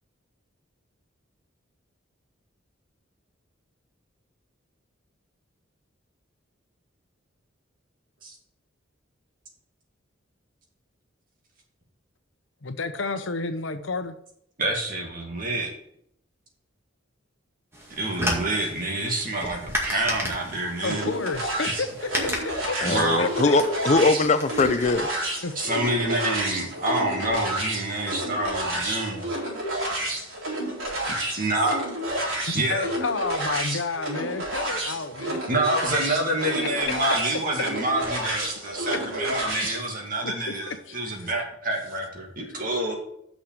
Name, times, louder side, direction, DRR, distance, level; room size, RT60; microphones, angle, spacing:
voice 1, 12.6-14.2 20.8-23.6 25.4-25.6 32.5-35.4 36.1-36.7 40.2-41.3 42.5-42.6, left 3 dB, 70° left, 0.8 m, -31 dB
voice 2, 14.6-15.7 18.0-21.1 22.8-23.3 25.6-29.3 31.1-31.8 32.5-32.9 35.5-43.0, right 1 dB, 45° right, 2.2 m, -27 dB
sound 1, 17.7-25.0, equal, 15° right, 1.9 m, -34 dB
sound 2, 20.8-39.8, right 1 dB, 90° right, 4.0 m, -30 dB
voice 3, 22.8-25.2, left 3 dB, 35° left, 0.4 m, -21 dB
6.5 x 6.1 x 7.5 m
head